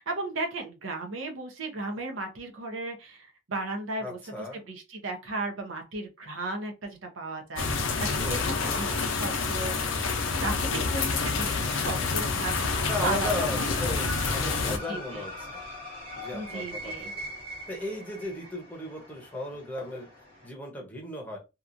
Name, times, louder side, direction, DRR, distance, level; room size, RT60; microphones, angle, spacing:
voice 1, 0.1-9.7 10.2-12.7 13.0-13.7 14.9-15.3 16.3-17.1, right 2 dB, 80° right, 4 dB, 0.7 m, -35 dB
voice 2, 4.0-4.6 8.2-8.5 10.6-11.1 12.9-15.6 16.2-17.2 17.7-20.1 20.4-21.4, left 1 dB, 10° left, 0 dB, 0.7 m, -36 dB
sound 1, 7.6-14.8, left 4 dB, 75° left, 0.5 m, -28 dB
sound 2, 10.5-20.5, equal, 50° right, 1.4 m, -42 dB
2.8 x 2.3 x 2.5 m, 0.26 s
head